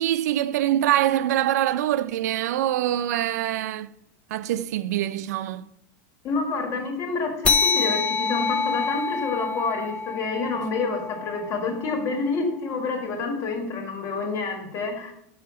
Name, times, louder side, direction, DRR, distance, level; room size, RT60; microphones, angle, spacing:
voice 1, 0.0-3.9 4.3-5.7, right 12 dB, 85° right, 0.4 m, -24 dB
voice 2, 6.2-15.1, left 4 dB, 35° left, 1.6 m, -28 dB
sound 1, 7.4-12.4, left 5 dB, 15° left, 0.4 m, -27 dB
5.6 x 5.6 x 4.9 m
supercardioid pair, 150°, 9 cm